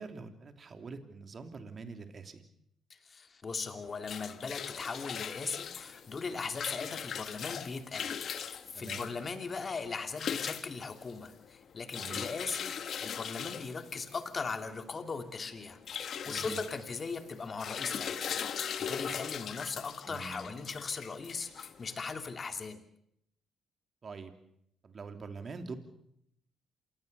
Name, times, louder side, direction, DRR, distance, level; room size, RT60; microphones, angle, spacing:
voice 1, 0.0-2.4 8.7-9.1 11.9-12.3 16.3-16.6 20.1-20.5 24.0-24.3 24.8-25.8, right 4 dB, 45° right, 7 dB, 3.1 m, -44 dB
voice 2, 2.9-15.8 16.1-22.8, left 4 dB, 40° left, 7 dB, 2.9 m, -39 dB
sound 1, 3.8-22.3, left 8 dB, 60° left, 1.5 m, -40 dB
27.5 x 18.5 x 6.8 m, 0.75 s
supercardioid pair, 65°, 0 cm